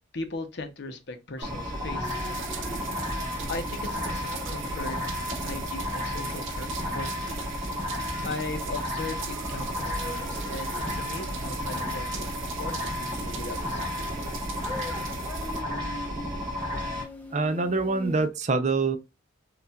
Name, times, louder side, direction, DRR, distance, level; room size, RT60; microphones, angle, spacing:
voice 1, 0.1-2.8 3.5-5.0 5.4-7.4 8.2-14.4, left 3 dB, 60° left, 0.7 m, -38 dB
sound 1, 1.4-18.3, left 1 dB, 10° left, 0.7 m, -45 dB
sound 2, 1.4-17.0, left 1 dB, 20° right, 2.6 m, -33 dB
sound 3, 2.0-15.6, right 6 dB, 75° right, 0.8 m, -40 dB
voice 2, 17.3-19.0, right 3 dB, 35° right, 0.5 m, -25 dB
6.7 x 2.4 x 2.3 m
head